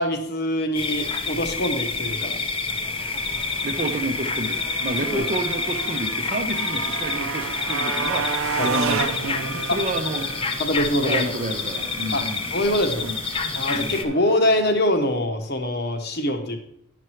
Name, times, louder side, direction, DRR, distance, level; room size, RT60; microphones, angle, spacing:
voice 1, 0.0-2.4 5.1-5.2 8.6-8.7 9.7-9.8 10.6-11.3 12.1-12.2 12.5-13.1 13.5-16.6, left 1 dB, 50° left, 6 dB, 1.1 m, -24 dB
sound 1, 0.7-14.0, left 4 dB, 25° left, 0.6 m, -28 dB
Motorcycle, 2.7-14.8, right 5 dB, 75° right, 0.6 m, -33 dB
voice 2, 3.6-10.7 11.0-12.5 13.0-13.2 13.6-14.0, right 2 dB, 35° right, 7 dB, 0.7 m, -30 dB
9.8 x 6.0 x 4.5 m, 0.74 s
head